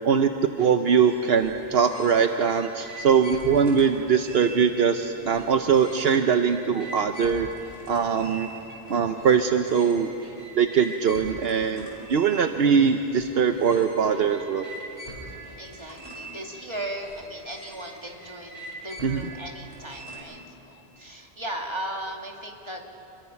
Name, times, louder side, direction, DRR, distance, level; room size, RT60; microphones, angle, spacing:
voice 1, 0.6-7.5 7.9-8.5 8.9-10.1 10.6-14.7 19.0-19.3, right 6 dB, 70° right, 7 dB, 1.0 m, -22 dB
sound 1, 0.9-20.2, right 1 dB, 70° left, 5.6 m, -43 dB
voice 2, 15.6-22.9, right 1 dB, 25° right, 1 dB, 2.3 m, -37 dB
28.0 x 22.0 x 5.8 m, 2.9 s
omnidirectional pair, 1.1 m